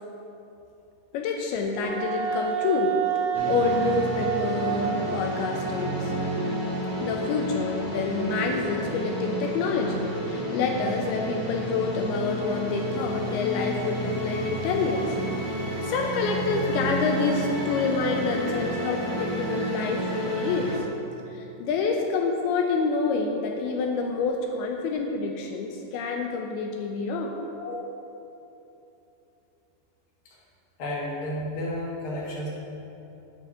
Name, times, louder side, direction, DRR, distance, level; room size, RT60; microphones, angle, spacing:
voice 1, 1.1-2.9 3.4-6.1 7.0-15.2 15.8-20.7 21.3-27.3, left 4 dB, 85° left, 2 dB, 2.5 m, -27 dB
Wind instrument woodwind instrument, 1.8-7.3, right 8 dB, 85° right, 1.7 m, -30 dB
sound 1, 3.3-20.8, right 1 dB, 30° left, 1.1 m, -31 dB
voice 2, 30.8-32.5, left 1 dB, 45° left, -6 dB, 1.9 m, -32 dB
9.2 x 6.4 x 4.9 m, 2.9 s
omnidirectional pair, 4.6 m